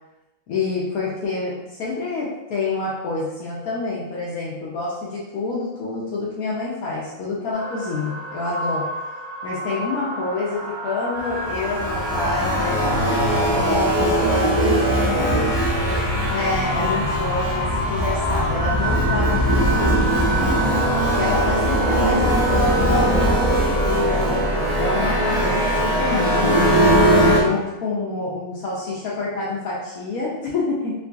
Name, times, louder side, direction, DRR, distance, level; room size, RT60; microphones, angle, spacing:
voice 1, 0.5-8.9 9.4-14.9 16.3-20.2 20.9-24.3 24.7-26.6 27.3-30.9, left 3 dB, 75° left, -6 dB, 0.8 m, -27 dB
sound 1, 7.5-25.4, right 1 dB, 70° right, 1.4 m, -32 dB
sound 2, 11.2-27.4, equal, 50° right, 0.4 m, -20 dB
3.7 x 2.5 x 2.3 m, 1.0 s
omnidirectional pair, 2.1 m